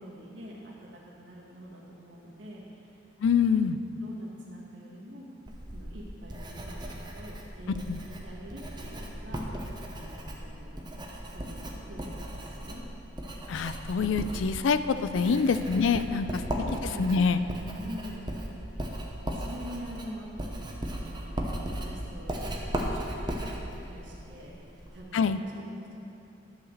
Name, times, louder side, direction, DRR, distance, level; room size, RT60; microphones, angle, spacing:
voice 1, 0.0-2.9 4.0-5.3 5.7-10.8 11.3-12.8 15.2-15.3 16.1-17.1 17.7-18.4 18.8-18.9 19.3-25.9, equal, 75° right, -4 dB, 1.9 m, -45 dB
voice 2, 3.2-3.8 7.9-8.0 13.5-16.3 17.0-17.4 25.1-25.4, left 5 dB, 85° left, 12 dB, 0.4 m, -25 dB
Writing, 5.5-25.0, right 1 dB, 25° right, 0.8 m, -37 dB
11.5 x 4.8 x 6.5 m, 2.9 s
head